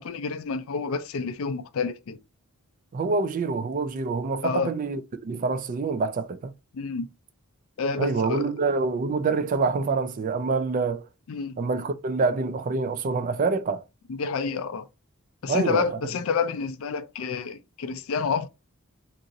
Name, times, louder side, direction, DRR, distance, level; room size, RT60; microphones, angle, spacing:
voice 1, 0.0-2.2 4.4-4.7 6.7-7.1 7.8-8.5 11.3-11.6 14.1-14.9 15.4-18.5, left 5 dB, 65° left, 0.4 m, -29 dB
voice 2, 2.9-6.5 8.0-11.1 11.6-13.8 15.5-15.9, right 4 dB, 40° right, 0.3 m, -26 dB
2.9 x 2.5 x 2.6 m
head